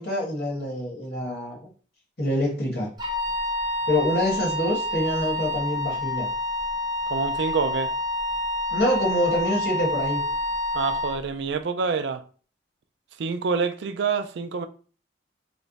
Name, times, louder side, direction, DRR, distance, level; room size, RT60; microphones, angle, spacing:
voice 1, 0.0-1.7 2.2-2.9 3.9-6.3 8.7-10.2, left 1 dB, 55° left, 1.3 m, -26 dB
Wind instrument woodwind instrument, 3.0-11.2, left 1 dB, 20° right, 0.6 m, -28 dB
voice 2, 7.1-7.9 10.7-12.2 13.2-14.7, right 5 dB, 70° right, 0.4 m, -27 dB
3.2 x 2.1 x 3.9 m
head